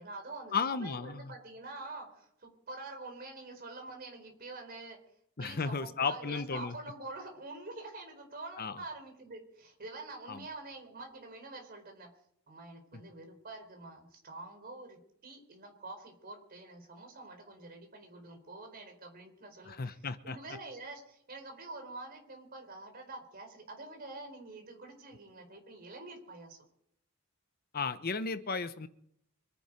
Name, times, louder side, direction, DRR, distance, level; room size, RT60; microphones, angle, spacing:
voice 1, 0.0-5.0 5.4-12.1 12.5-26.6, right 2 dB, 45° right, 4 dB, 4.4 m, -46 dB
voice 2, 0.5-1.2 5.4-6.7 8.6-8.8 10.3-10.4 12.9-13.0 19.7-20.4 27.7-28.9, left 5 dB, 45° left, 11 dB, 1.0 m, -34 dB
25.5 x 10.0 x 5.2 m, 0.72 s
head